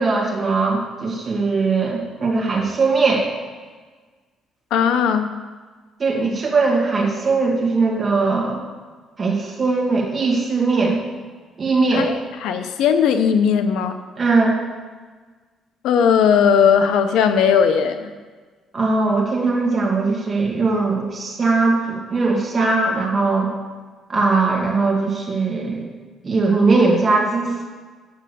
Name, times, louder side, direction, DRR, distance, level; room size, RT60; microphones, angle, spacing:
voice 1, 0.0-3.2 6.0-8.6 9.2-11.0 11.6-12.1 14.2-14.6 18.7-23.5 24.1-25.9 26.2-27.6, right 3 dB, 25° right, -2 dB, 1.9 m, -20 dB
voice 2, 4.7-5.3 11.9-14.0 15.8-18.1, left 7 dB, 80° left, 8 dB, 0.7 m, -17 dB
8.0 x 6.4 x 6.8 m, 1.4 s
cardioid pair, 170°, 0 cm